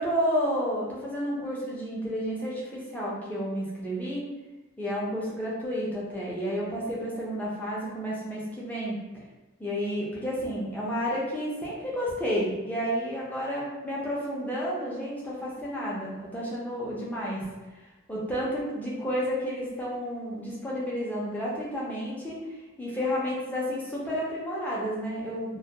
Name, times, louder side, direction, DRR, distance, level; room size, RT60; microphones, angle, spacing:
voice 1, 0.0-4.2 4.8-9.0 9.6-17.5 17.7-25.6, equal, 10° left, -6 dB, 0.5 m, -31 dB
2.2 x 2.1 x 2.7 m, 1.1 s
head